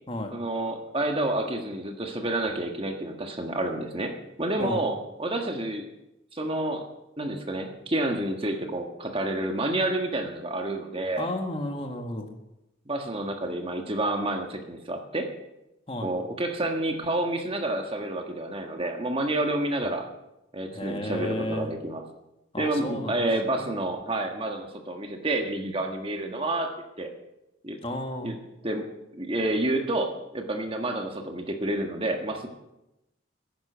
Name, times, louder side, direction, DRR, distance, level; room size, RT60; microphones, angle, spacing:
voice 1, 0.3-4.1 4.4-5.8 6.3-6.8 7.2-11.3 12.9-15.3 16.0-20.0 20.5-22.0 22.6-26.7 27.0-27.1 27.6-27.8 28.2-28.4 28.6-28.8 29.1-32.5, right 1 dB, 30° right, 4 dB, 1.5 m, -29 dB
voice 2, 11.2-12.3 15.9-16.1 20.7-21.7 22.5-23.7 27.8-28.3, left 1 dB, 30° left, 4 dB, 1.7 m, -33 dB
15.5 x 10.5 x 6.9 m, 0.92 s
head